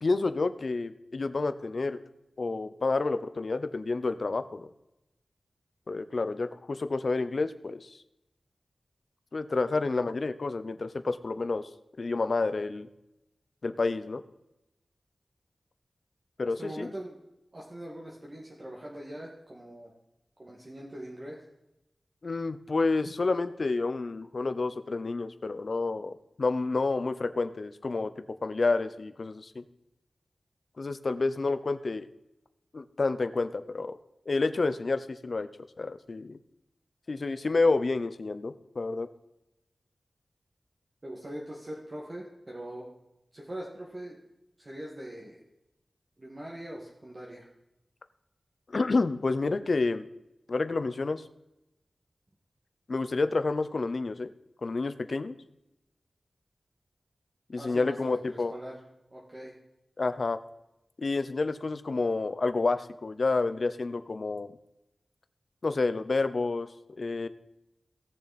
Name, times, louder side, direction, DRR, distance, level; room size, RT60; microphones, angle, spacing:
voice 1, 0.0-2.0 2.4-4.7 5.9-8.0 9.3-11.7 12.0-12.9 13.6-14.2 16.4-16.9 22.2-29.6 30.8-32.1 32.7-34.0 34.3-35.5 35.8-36.4 37.1-39.1 48.7-50.1 50.5-51.2 52.9-54.3 54.6-55.3 57.5-58.5 60.0-60.4 61.0-64.5 65.6-66.7 67.0-67.3, left 3 dB, 55° left, 12 dB, 0.7 m, -29 dB
voice 2, 16.4-17.2 17.5-19.9 20.4-21.4 41.0-42.9 43.3-44.2 44.6-45.4 46.2-47.5 57.6-58.8 59.1-59.5, right 1 dB, 35° right, -3 dB, 2.0 m, -42 dB
18.0 x 7.0 x 4.2 m, 0.89 s
wide cardioid pair, 95°, 0 cm